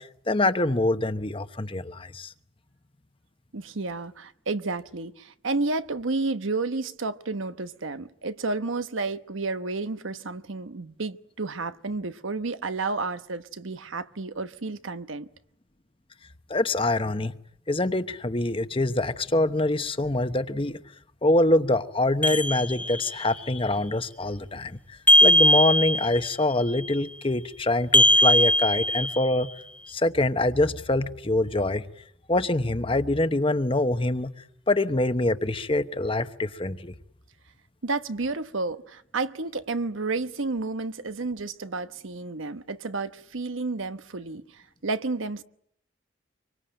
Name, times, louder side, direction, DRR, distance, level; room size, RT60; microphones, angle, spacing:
voice 1, 0.0-2.3 16.5-17.3 17.7-20.8 21.2-24.8 25.2-29.5 29.9-31.8 32.3-34.3 34.7-36.9, left 2 dB, 30° left, 1.0 m, -25 dB
voice 2, 3.5-15.3 37.8-45.4, right 3 dB, 85° right, 1.1 m, -31 dB
sound 1, 22.2-23.2 25.1-26.3 27.9-29.4, left 1 dB, 10° left, 1.3 m, -20 dB
26.0 x 24.0 x 8.9 m
head